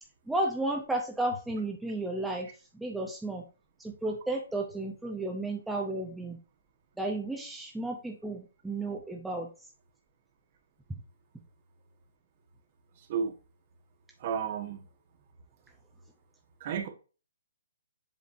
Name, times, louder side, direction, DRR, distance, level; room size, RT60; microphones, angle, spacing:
voice 1, 0.3-3.4 3.8-6.4 7.0-9.5, right 2 dB, 5° right, 0.8 m, -33 dB
voice 2, 14.2-14.8 16.6-16.9, right 7 dB, 40° right, 1.3 m, -32 dB
7.7 x 5.0 x 2.6 m
figure-of-eight pair, 130°, 0 cm